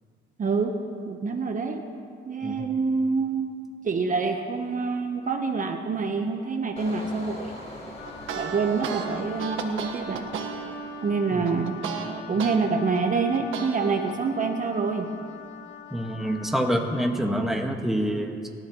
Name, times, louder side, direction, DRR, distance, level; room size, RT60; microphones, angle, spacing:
voice 1, 0.4-0.7 1.1-1.9 2.3-3.5 3.8-7.5 8.4-10.3 11.0-11.8 12.3-15.1, right 4 dB, 40° right, 4 dB, 1.2 m, -26 dB
Engine, 6.8-11.4 11.8-12.1, left 1 dB, 35° left, 4.9 m, -44 dB
Wind instrument woodwind instrument, 8.0-17.1, left 9 dB, 75° left, 1.0 m, -44 dB
sound 1, 8.0-12.6 13.0-14.1, right 7 dB, 85° right, 1.6 m, -34 dB
voice 2, 15.9-18.5, equal, ahead, 1 dB, 1.8 m, -26 dB
26.5 x 13.0 x 3.2 m, 2.3 s
cardioid pair, 90°, 20 cm